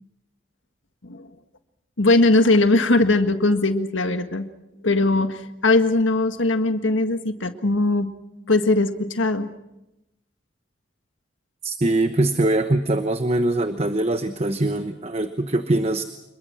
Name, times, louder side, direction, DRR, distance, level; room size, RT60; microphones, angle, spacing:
voice 1, 2.0-4.5 4.8-8.1 8.5-9.5, left 2 dB, 75° left, 8 dB, 1.7 m, -20 dB
voice 2, 11.6-16.0, right 2 dB, 30° right, 9 dB, 1.0 m, -22 dB
26.5 x 22.0 x 6.3 m, 0.93 s
head